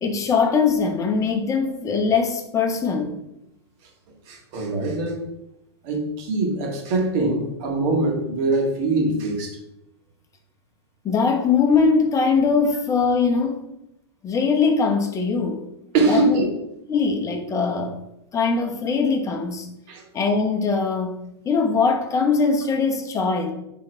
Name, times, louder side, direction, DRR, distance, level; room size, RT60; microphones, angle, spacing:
voice 1, 0.0-3.2 11.0-13.6 14.2-15.6 16.1-16.4 16.9-18.0 18.3-19.7 20.1-21.2 21.4-23.5, left 5 dB, 20° left, 3 dB, 1.0 m, -21 dB
voice 2, 4.3-5.3 5.8-9.6 15.9-16.5 19.9-20.0, right 2 dB, 50° right, 0 dB, 1.9 m, -23 dB
8.6 x 3.7 x 3.3 m, 0.85 s
hypercardioid pair, 105°, 14 cm